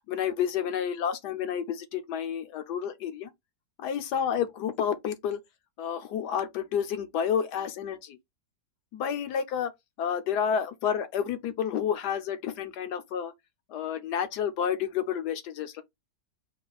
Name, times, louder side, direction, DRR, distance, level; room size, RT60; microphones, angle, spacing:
voice 1, 0.1-3.3 3.8-5.4 5.8-8.2 8.9-9.7 10.0-13.3 13.7-15.8, left 8 dB, 75° left, 1.2 m, -30 dB
4.2 x 2.5 x 3.9 m
omnidirectional pair, 1.9 m